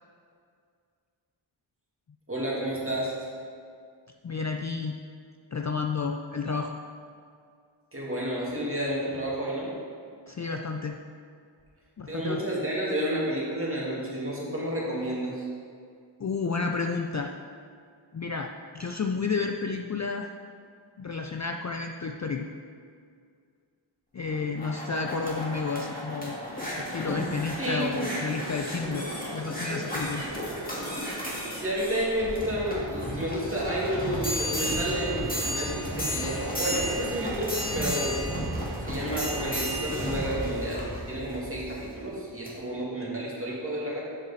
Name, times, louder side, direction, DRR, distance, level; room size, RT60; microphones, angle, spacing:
voice 1, 2.3-3.1 7.9-9.7 12.1-15.5 26.8-27.0 27.6-27.9 31.5-38.2 38.8-44.0, right 1 dB, 30° right, -5 dB, 2.1 m, -31 dB
voice 2, 4.2-5.0 5.5-6.7 10.3-11.0 12.0-12.4 16.2-17.3 18.1-20.3 21.0-22.5 24.1-26.4 26.8-29.1 29.3-30.2, left 4 dB, 40° left, 3 dB, 0.4 m, -31 dB
sound 1, 24.2-41.9 42.5-42.6, equal, 20° left, 2.1 m, -33 dB
sound 2, 27.6-39.6, right 2 dB, 90° right, 1.1 m, -41 dB
7.7 x 6.4 x 4.1 m, 2.2 s
wide cardioid pair, 55°, 46 cm